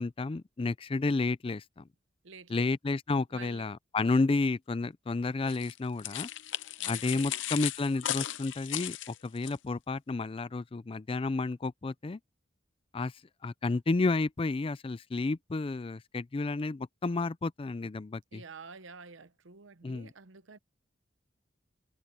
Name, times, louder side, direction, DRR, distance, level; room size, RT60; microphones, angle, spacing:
voice 1, 0.0-1.8 2.5-6.3 6.9-12.2 12.9-13.1 13.4-18.4 19.8-20.1, left 3 dB, 30° left, 0.4 m, -31 dB
voice 2, 2.2-2.6 3.3-3.7 5.4-5.6 6.8-7.4 18.3-20.6, right 4 dB, 85° right, 0.9 m, -49 dB
sound 1, 5.5-9.6, left 12 dB, 75° left, 0.7 m, -36 dB
head